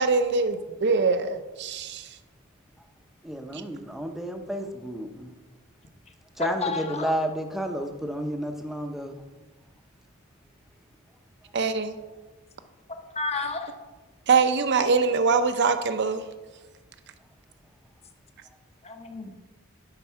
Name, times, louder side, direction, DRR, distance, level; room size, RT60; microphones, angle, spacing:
voice 1, 0.0-2.1 3.5-3.6 11.5-11.9 14.3-16.2, right 4 dB, 55° right, 10 dB, 0.7 m, -23 dB
voice 2, 3.2-5.3 6.4-9.2, right 1 dB, ahead, 4 dB, 0.7 m, -31 dB
voice 3, 6.4-7.1 13.1-13.7 18.8-19.3, left 3 dB, 30° left, 5 dB, 0.9 m, -30 dB
10.5 x 4.6 x 5.7 m, 1.2 s
head